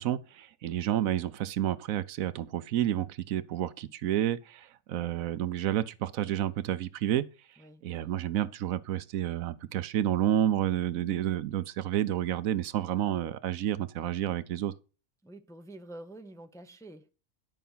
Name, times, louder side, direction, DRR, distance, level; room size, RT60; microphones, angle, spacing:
voice 1, 0.0-7.3 7.8-14.7, right 12 dB, 75° right, 1.1 m, -30 dB
voice 2, 7.6-8.1 10.9-11.2 15.2-17.1, right 1 dB, 5° left, 0.6 m, -48 dB
11.0 x 5.7 x 5.5 m
omnidirectional pair, 1.5 m